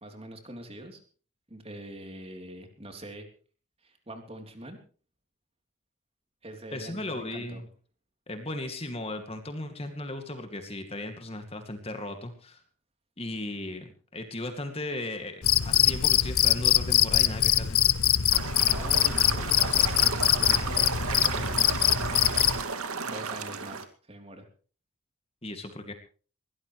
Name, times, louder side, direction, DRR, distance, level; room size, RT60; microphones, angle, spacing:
voice 1, 0.0-1.0 1.5-3.3 3.8-4.8 6.4-7.6 18.5-19.9 20.2-21.9 23.0-24.4, right 1 dB, 25° right, 5 dB, 3.4 m, -44 dB
voice 2, 6.7-7.7 8.3-12.6 13.2-17.8 25.4-25.9, left 1 dB, 25° left, 6 dB, 2.3 m, -36 dB
Cricket, 15.4-22.6, left 11 dB, 80° left, 0.9 m, -23 dB
sound 1, 18.3-23.8, right 5 dB, 85° right, 2.3 m, -33 dB
21.5 x 17.5 x 3.2 m, 0.40 s
head